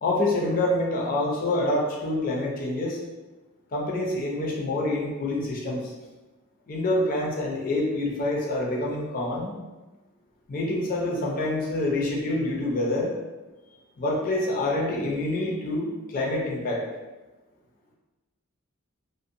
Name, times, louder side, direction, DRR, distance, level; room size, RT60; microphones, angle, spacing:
voice 1, 0.0-3.0 3.7-5.9 6.7-9.5 10.5-13.1 14.0-16.8, left 1 dB, 40° left, -2 dB, 0.5 m, -26 dB
2.5 x 2.1 x 2.6 m, 1.2 s
head